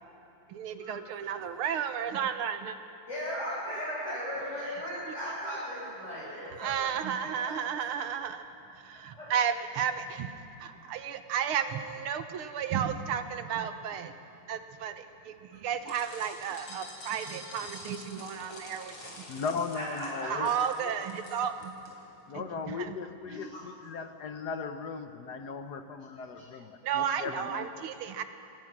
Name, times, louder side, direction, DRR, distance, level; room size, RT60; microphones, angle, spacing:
voice 1, 0.5-2.8 6.6-8.4 8.7-10.3 10.6-14.1 14.5-19.1 20.3-21.7 22.3-23.0 26.8-28.2, right 8 dB, 80° right, 9 dB, 1.9 m, -33 dB
voice 2, 3.1-7.0 9.2-9.3 19.7-20.5 23.3-23.6, equal, 30° left, -11 dB, 7.4 m, -37 dB
sound 1, 15.9-21.9, left 2 dB, 80° left, 4.9 m, -47 dB
voice 3, 19.3-20.5 20.8-20.9 22.3-27.9, left 5 dB, 55° left, 8 dB, 1.4 m, -37 dB
27.0 x 18.5 x 6.1 m, 2.9 s
omnidirectional pair, 2.4 m